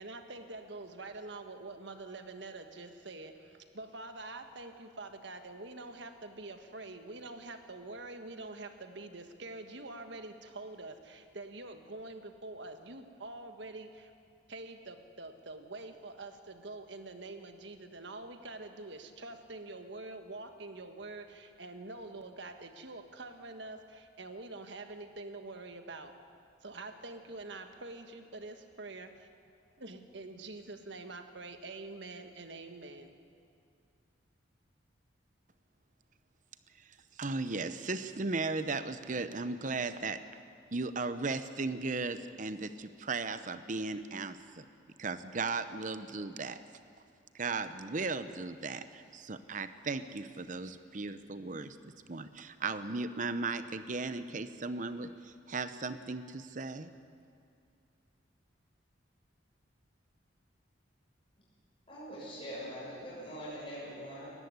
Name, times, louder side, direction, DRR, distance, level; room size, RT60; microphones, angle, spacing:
voice 1, 0.0-14.1 14.5-26.1 26.6-29.3 29.8-33.1, right 2 dB, 70° right, 6 dB, 1.5 m, -46 dB
voice 2, 37.2-40.2 40.7-44.6 45.0-46.6 47.3-56.9, right 3 dB, 40° right, 11 dB, 0.8 m, -36 dB
voice 3, 61.9-64.3, equal, 30° left, -7 dB, 6.8 m, -43 dB
20.0 x 15.0 x 9.5 m, 2.4 s
head